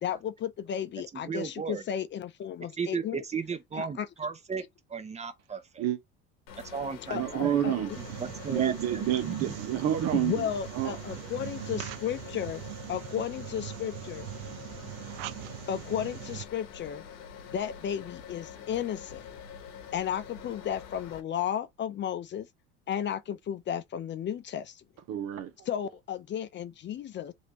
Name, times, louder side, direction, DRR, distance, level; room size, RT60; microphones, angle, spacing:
voice 1, 0.0-3.2 3.8-4.1 7.1-7.7 10.1-12.6 12.9-14.3 15.7-17.0 17.5-19.2 19.9-22.5 22.9-24.8 25.7-27.3, left 9 dB, 40° left, 0.6 m, -33 dB
voice 2, 1.1-1.8 2.8-4.6 4.9-5.8 6.7-7.2 7.4-7.5 8.2-9.4, right 5 dB, 25° right, 0.9 m, -35 dB
sound 1, 6.5-21.2, left 7 dB, 85° left, 1.0 m, -46 dB
voice 3, 7.1-7.9 8.5-11.0 25.1-25.7, right 11 dB, 55° right, 1.1 m, -29 dB
sound 2, 7.9-16.4, right 16 dB, 80° right, 0.5 m, -41 dB
3.3 x 2.7 x 3.0 m
supercardioid pair, 85°, 29 cm